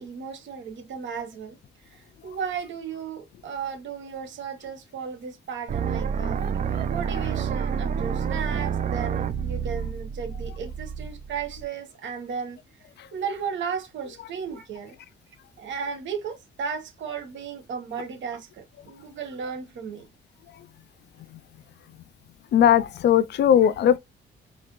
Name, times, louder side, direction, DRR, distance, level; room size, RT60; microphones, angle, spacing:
voice 1, 0.0-1.6 1.9-6.4 6.7-12.6 13.1-15.0 15.6-20.1, right 6 dB, 70° right, 1.1 m, -35 dB
sound 1, 5.7-11.7, right 7 dB, 40° right, 0.4 m, -28 dB
voice 2, 22.5-24.0, left 9 dB, 60° left, 0.4 m, -18 dB
4.2 x 2.5 x 2.9 m
cardioid pair, 90°, 20 cm